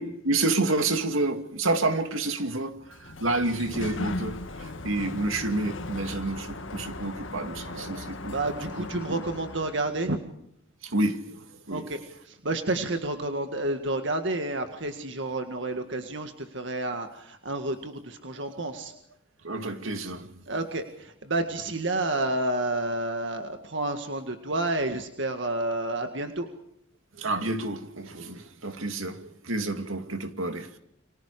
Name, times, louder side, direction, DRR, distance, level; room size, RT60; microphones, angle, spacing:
voice 1, 0.0-8.4 8.8-9.2 10.8-11.9 18.4-18.5 18.7-18.9 19.4-20.3 27.1-30.8, right 2 dB, 80° right, 2.4 m, -29 dB
Sliding door, 2.7-10.1, left 2 dB, 70° left, 1.8 m, -38 dB
voice 2, 7.6-8.0 8.3-10.2 11.7-18.9 20.5-26.5 30.4-30.6, right 2 dB, 60° right, 1.9 m, -30 dB
29.5 x 26.0 x 5.0 m
head